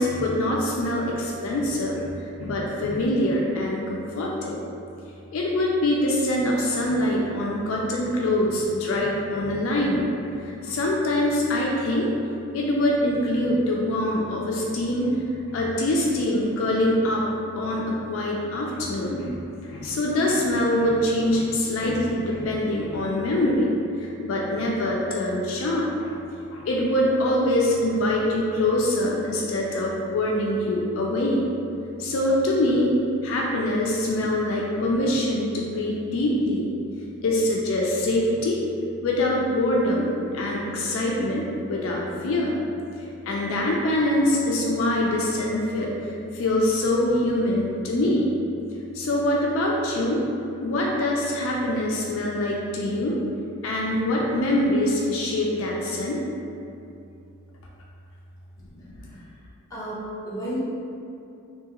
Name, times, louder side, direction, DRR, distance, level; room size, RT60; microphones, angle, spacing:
voice 1, 0.0-4.6 5.3-12.1 12.5-15.1 15.5-17.2 17.5-19.3 19.6-23.7 24.0-26.1 26.5-31.5 32.0-33.0 33.2-36.7 37.2-38.6 39.0-42.6 43.3-48.4 48.9-50.2 50.6-53.2 53.6-56.2 58.8-59.0, left 1 dB, 65° left, -2 dB, 0.3 m, -24 dB
voice 2, 58.9-59.4 59.7-60.6, equal, 15° left, -10 dB, 0.6 m, -33 dB
2.7 x 2.3 x 2.9 m, 2.6 s
head